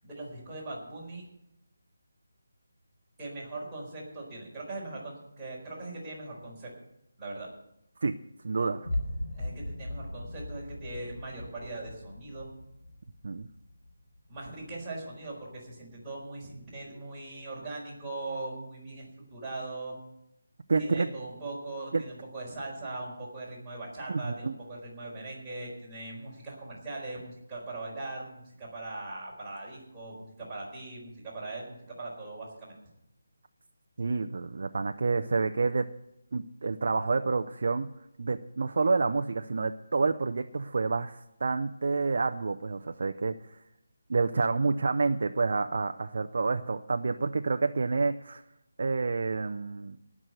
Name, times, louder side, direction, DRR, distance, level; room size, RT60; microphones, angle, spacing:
voice 1, 0.0-1.2 3.2-6.7 7.2-7.5 9.4-12.5 14.3-20.0 20.8-32.7, right 2 dB, 5° right, -9 dB, 4.2 m, -40 dB
voice 2, 8.4-8.9 13.2-13.5 20.7-21.1 21.9-22.0 24.1-24.5 34.0-35.9 36.3-37.9 38.2-43.6 44.1-48.4 48.8-50.0, right 4 dB, 55° right, 6 dB, 0.6 m, -28 dB
sound 1, 8.8-14.9, left 1 dB, 55° left, 4.2 m, -38 dB
18.0 x 6.2 x 7.9 m, 0.83 s
figure-of-eight pair, 170°, 0 cm